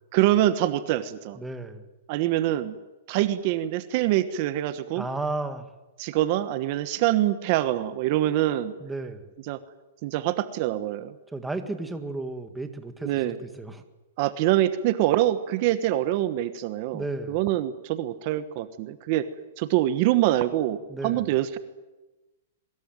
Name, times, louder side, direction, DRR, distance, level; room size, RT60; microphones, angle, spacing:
voice 1, 0.1-1.4 2.1-2.7 3.1-5.0 6.0-8.7 9.5-9.6 10.0-11.1 13.0-13.4 14.2-19.2 19.6-21.6, right 14 dB, 40° right, 12 dB, 1.3 m, -25 dB
voice 2, 1.3-1.8 5.0-5.7 8.8-9.3 11.3-13.8 16.9-17.4 20.9-21.3, right 2 dB, 5° right, 7 dB, 1.8 m, -33 dB
23.0 x 21.0 x 9.3 m, 1.1 s
hypercardioid pair, 155°, 0 cm